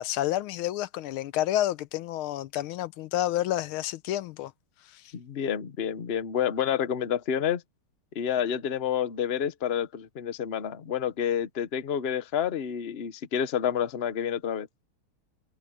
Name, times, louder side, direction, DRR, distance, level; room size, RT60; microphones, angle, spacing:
voice 1, 0.0-4.5 4.9-5.0, left 13 dB, 85° left, 1.5 m, -29 dB
voice 2, 5.1-7.6 8.1-14.7, left 8 dB, 40° left, 0.9 m, -29 dB
open air
omnidirectional pair, 2.3 m